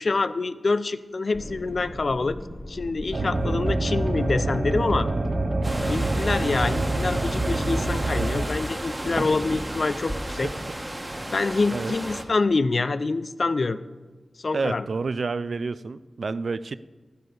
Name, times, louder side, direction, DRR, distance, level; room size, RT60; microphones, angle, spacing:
voice 1, 0.0-2.4 2.7-5.1 5.9-10.5 11.3-13.8 14.4-14.9, left 3 dB, 60° left, 14 dB, 0.4 m, -26 dB
sound 1, 1.3-8.1, left 1 dB, 25° left, 0.9 m, -42 dB
sound 2, 3.1-8.5, right 2 dB, 50° right, 0.8 m, -26 dB
sound 3, 5.6-12.2, right 1 dB, 25° right, 1.3 m, -33 dB
voice 2, 14.5-16.8, right 4 dB, 70° right, 15 dB, 0.3 m, -29 dB
12.5 x 9.7 x 3.9 m, 1.3 s
cardioid pair, 45°, 0 cm